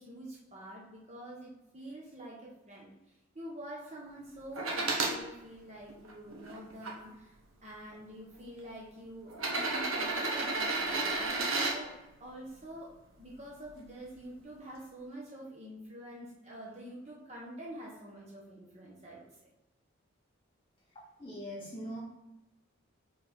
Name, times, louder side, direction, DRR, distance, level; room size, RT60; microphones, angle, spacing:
voice 1, 0.0-2.9 3.3-7.4 7.6-12.9 13.2-19.3, right 1 dB, 30° right, -4 dB, 1.2 m, -47 dB
sound 1, 4.6-5.2 5.9-6.9 7.9-8.0 9.3-11.8 13.6-13.7, right 3 dB, 70° right, 1.2 m, -32 dB
voice 2, 21.2-22.0, equal, 25° left, -5 dB, 2.3 m, -41 dB
4.5 x 4.3 x 5.4 m, 0.98 s
head